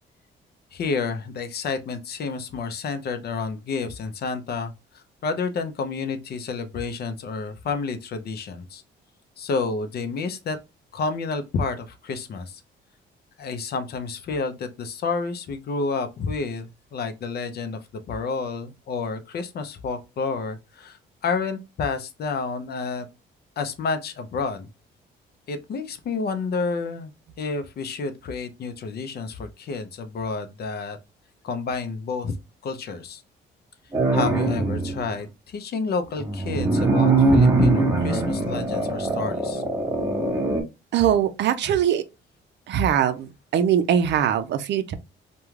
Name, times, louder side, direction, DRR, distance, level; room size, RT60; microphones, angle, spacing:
voice 1, 0.7-8.8 9.4-10.6 10.9-12.6 13.4-17.8 18.1-23.1 23.6-24.7 25.5-27.1 27.4-31.0 31.4-32.3 32.6-33.2 34.1-39.6, left 4 dB, 55° left, 0.5 m, -30 dB
sound 1, 33.9-35.0 36.2-40.6, right 3 dB, 15° right, 0.8 m, -21 dB
voice 2, 40.9-42.0 42.7-44.9, right 9 dB, 65° right, 0.4 m, -22 dB
2.3 x 2.2 x 3.0 m
cardioid pair, 90°, 20 cm